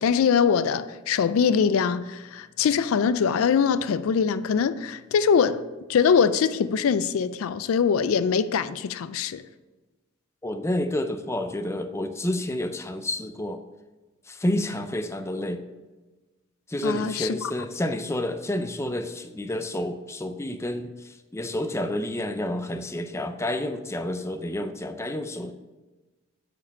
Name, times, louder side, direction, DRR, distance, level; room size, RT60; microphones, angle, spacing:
voice 1, 0.0-5.6 5.9-9.4 16.8-17.3, left 6 dB, 75° left, 0.4 m, -23 dB
voice 2, 10.4-13.6 14.3-15.6 16.7-25.5, left 1 dB, 15° left, 0.4 m, -29 dB
8.6 x 5.1 x 5.2 m
head